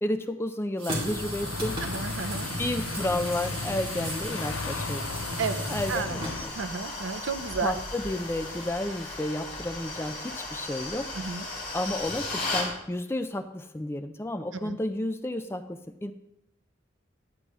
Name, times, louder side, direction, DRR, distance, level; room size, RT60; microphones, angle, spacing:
voice 1, 0.0-1.8 2.6-5.2 5.7-6.6 7.6-11.1 11.7-16.1, left 1 dB, 10° left, 8 dB, 0.4 m, -32 dB
sound 1, 0.8-8.7, right 1 dB, 30° right, 2.4 m, -36 dB
sound 2, 0.9-6.5, left 6 dB, 80° left, 0.5 m, -38 dB
sound 3, 1.8-12.7, left 2 dB, 40° left, 2.7 m, -37 dB
voice 2, 1.8-2.5 5.4-6.2 6.5-7.8 11.2-11.5 14.6-14.8, right 4 dB, 75° right, 11 dB, 0.6 m, -32 dB
9.9 x 9.4 x 3.0 m, 0.81 s
head